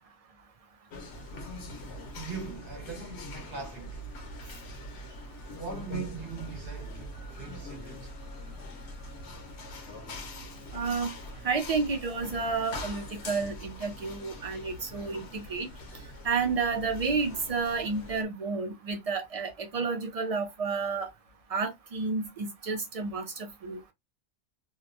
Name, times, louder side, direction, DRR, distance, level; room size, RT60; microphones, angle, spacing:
sound 1, 0.9-18.2, left 1 dB, 70° left, 1.0 m, -43 dB
voice 1, 2.1-4.1 5.6-8.1, right 5 dB, 50° right, 1.1 m, -40 dB
voice 2, 10.7-11.1 11.4-15.7 16.2-21.1 21.5-23.8, right 4 dB, 75° right, 0.3 m, -31 dB
2.8 x 2.1 x 2.4 m
omnidirectional pair, 1.2 m